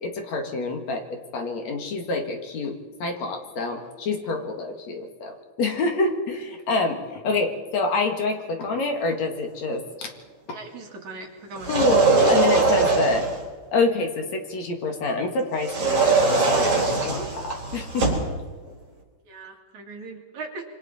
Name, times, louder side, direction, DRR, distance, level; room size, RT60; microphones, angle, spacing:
voice 1, 0.0-10.1 10.5-10.6 11.7-13.3 13.7-16.7 17.0-18.2, left 3 dB, 60° left, 3 dB, 3.0 m, -27 dB
voice 2, 10.5-12.0 19.3-20.6, right 3 dB, 65° right, 1 dB, 3.7 m, -39 dB
sound 1, 11.6-13.4 15.6-18.3, right 3 dB, 45° right, 4.8 m, -21 dB
26.0 x 25.0 x 4.2 m, 1.4 s
omnidirectional pair, 3.6 m